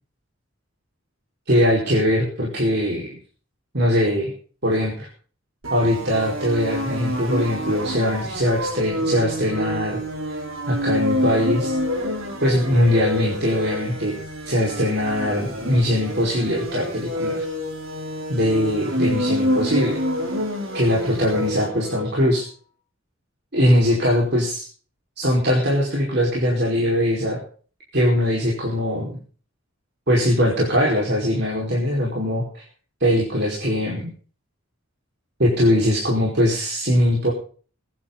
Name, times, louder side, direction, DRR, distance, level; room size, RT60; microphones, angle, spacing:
voice 1, 1.5-3.1 3.7-4.3 4.6-5.1 5.7-10.0 10.3-10.4 10.7-11.7 12.4-14.2 14.4-17.4 18.3-20.0 20.7-22.5 23.5-24.7 25.2-27.4 27.9-29.2 30.1-32.6 33.0-34.1 35.4-37.3, equal, 55° right, -3 dB, 4.9 m, -21 dB
sound 1, 5.6-22.2, equal, 90° right, 4.3 m, -27 dB
22.0 x 11.0 x 4.0 m, 0.41 s
head